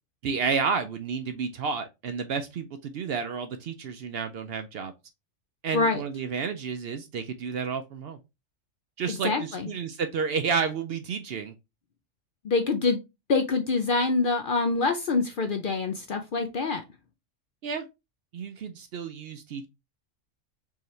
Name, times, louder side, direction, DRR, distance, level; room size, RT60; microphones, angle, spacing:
voice 1, 0.2-4.9 5.6-8.2 9.0-11.5 17.6-17.8 18.3-19.7, right 5 dB, 60° right, 0.7 m, -31 dB
voice 2, 9.1-9.7 12.4-13.0 13.3-16.8, left 3 dB, 60° left, 0.6 m, -25 dB
4.7 x 2.9 x 3.1 m
omnidirectional pair, 1.3 m